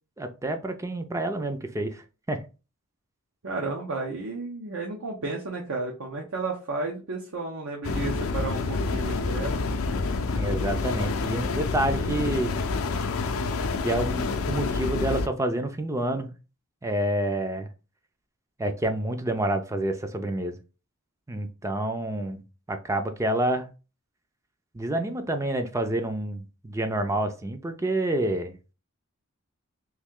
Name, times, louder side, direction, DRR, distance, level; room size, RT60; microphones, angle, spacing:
voice 1, 0.2-2.4 10.3-12.6 13.8-16.3 16.8-17.7 18.6-20.6 21.3-23.7 24.7-28.6, right 1 dB, 15° right, 0.4 m, -28 dB
voice 2, 3.4-9.6, right 3 dB, 75° right, 0.7 m, -32 dB
sound 1, 7.8-15.3, left 3 dB, 80° left, 0.5 m, -28 dB
3.1 x 2.7 x 3.6 m
head